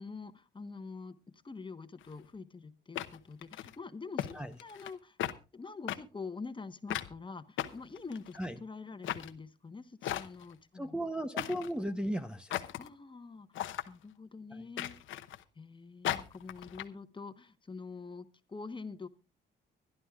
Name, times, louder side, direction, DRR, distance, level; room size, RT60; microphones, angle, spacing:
voice 1, 0.0-5.2 5.5-11.0 12.8-13.5 13.9-14.9 15.6-19.1, left 4 dB, 25° left, 10 dB, 1.1 m, -45 dB
sound 1, 2.0-2.1 3.0-3.7 4.2-4.3 4.6-4.9 5.2-5.4 5.9-6.0 6.9-7.1 7.6-8.4 9.0-9.3 10.0-10.5 11.4-11.7 12.5-12.9 13.5-13.9 14.8-15.4 16.0-16.8, left 12 dB, 80° left, 0.9 m, -36 dB
voice 2, 10.7-12.6 14.5-14.6, right 1 dB, 5° right, 5 dB, 0.8 m, -36 dB
24.5 x 11.0 x 2.4 m, 0.30 s
cardioid pair, 90°, 20 cm